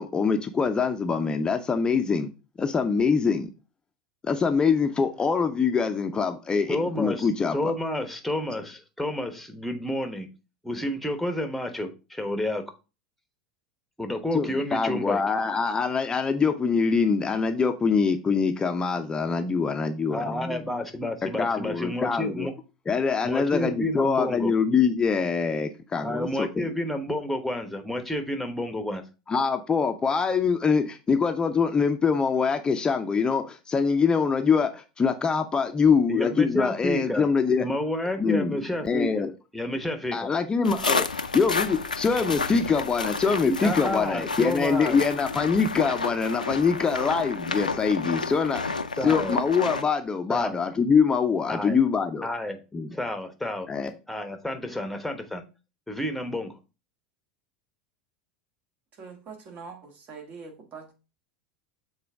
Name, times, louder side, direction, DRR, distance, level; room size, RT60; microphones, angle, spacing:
voice 1, 0.0-2.3 2.6-3.5 4.2-7.7 14.3-20.6 21.4-22.5 22.9-26.5 29.3-37.7 38.2-38.5 38.8-39.3 40.1-41.1 41.3-48.8 49.0-52.3 52.7-52.9 53.7-53.9, left 5 dB, 20° left, 0.6 m, -24 dB
voice 2, 6.7-10.3 10.6-12.6 14.0-15.2 20.1-22.5 23.2-24.5 26.0-29.0 36.1-37.2 37.6-39.3 39.5-40.2 43.4-45.0 49.0-49.4 50.3-50.6 51.5-51.8 52.2-52.6 52.9-53.7 54.1-55.4 55.9-56.6, left 1 dB, 5° left, 1.0 m, -30 dB
sound 1, 40.6-49.8, left 4 dB, 85° left, 0.4 m, -30 dB
voice 3, 58.9-60.9, right 5 dB, 40° right, 1.7 m, -43 dB
6.8 x 4.0 x 3.5 m
figure-of-eight pair, 80°, 4 cm